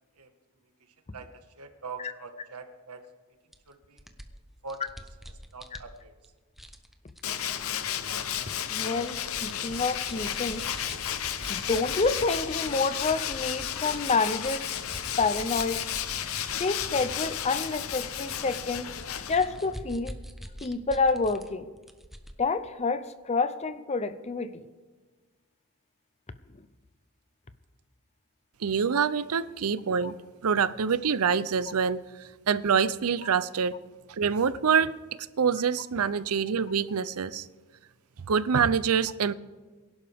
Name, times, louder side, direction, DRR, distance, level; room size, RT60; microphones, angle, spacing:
voice 1, 1.6-3.0 3.7-4.0 4.6-4.9 5.2-6.1, right 4 dB, 90° right, 6 dB, 1.6 m, -43 dB
sound 1, 3.5-3.6 4.0-6.2 6.6-7.2 8.2-8.4 8.8-14.0 14.3-21.5 21.8-22.3, equal, ahead, 0.9 m, -45 dB
Tools, 7.2-19.7, left 9 dB, 65° left, 0.8 m, -33 dB
voice 2, 8.7-10.7 11.5-14.7 15.2-15.9 16.5-18.9 19.3-20.2 20.6-21.7 22.4-24.7 30.0-30.1, left 4 dB, 30° left, 12 dB, 0.6 m, -28 dB
voice 3, 28.6-30.1 30.4-33.8 34.1-37.5 38.3-39.3, right 6 dB, 75° right, 16 dB, 0.6 m, -26 dB
23.0 x 11.5 x 3.5 m, 1.3 s
head